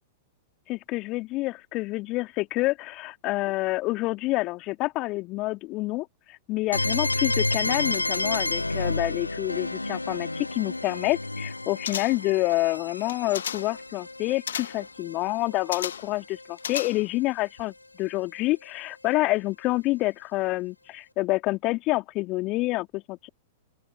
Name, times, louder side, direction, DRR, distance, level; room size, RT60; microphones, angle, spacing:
voice 1, 0.7-23.3, left 20 dB, 35° left, 2.0 m, -28 dB
sound 1, 6.7-16.5, left 2 dB, 85° left, 1.6 m, -31 dB
sound 2, 11.8-12.4 13.0-13.8 14.5-14.9 15.7-16.2 16.6-17.3 17.6-17.7, left 8 dB, 65° left, 0.8 m, -34 dB
open air
figure-of-eight pair, 100°, 0 cm